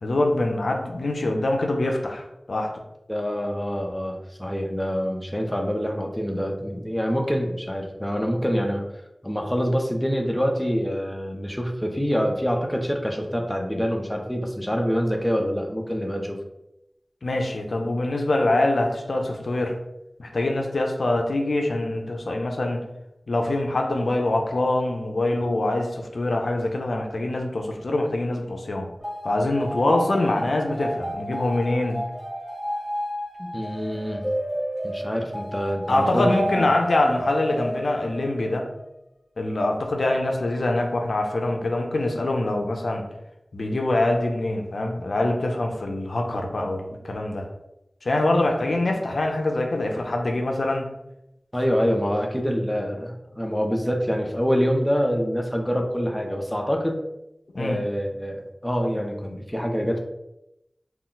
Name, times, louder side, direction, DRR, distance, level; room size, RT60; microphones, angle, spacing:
voice 1, 0.0-2.7 17.2-19.8 20.2-22.8 23.3-28.9 29.2-32.0 35.9-38.7 39.4-43.1 43.5-47.5 48.0-50.9 57.5-57.8, left 2 dB, 80° left, 2 dB, 0.4 m, -24 dB
voice 2, 3.1-8.8 9.2-16.4 33.4-34.3 34.8-36.7 51.5-57.0 57.6-60.0, equal, 10° left, 2 dB, 0.5 m, -26 dB
sound 1, 29.0-38.8, equal, 15° right, 1.4 m, -31 dB
2.3 x 2.0 x 3.8 m, 0.87 s
wide cardioid pair, 40°, 0 cm